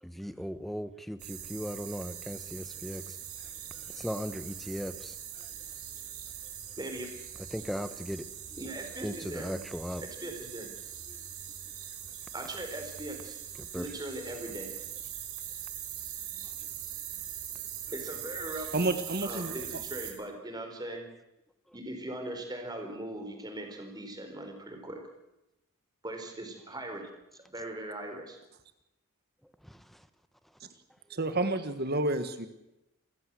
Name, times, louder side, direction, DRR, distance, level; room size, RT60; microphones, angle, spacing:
voice 1, 0.0-3.2 3.7-5.5 7.5-8.2 9.0-10.0 11.1-11.2 13.6-13.8 16.4-16.5 17.5-17.6 29.6-30.1, equal, ahead, 12 dB, 1.1 m, -38 dB
sound 1, 1.2-20.1, right 10 dB, 75° right, 4.5 m, -42 dB
voice 2, 6.8-7.1 8.5-9.6 10.0-10.7 12.3-13.4 13.7-14.7 17.9-18.7 19.2-21.1 21.7-25.0 26.0-28.4, right 1 dB, 20° right, 4 dB, 4.5 m, -40 dB
voice 3, 18.7-19.6 30.6-30.7 31.1-32.5, right 2 dB, 45° right, 10 dB, 1.5 m, -30 dB
28.5 x 15.0 x 7.8 m, 0.92 s
head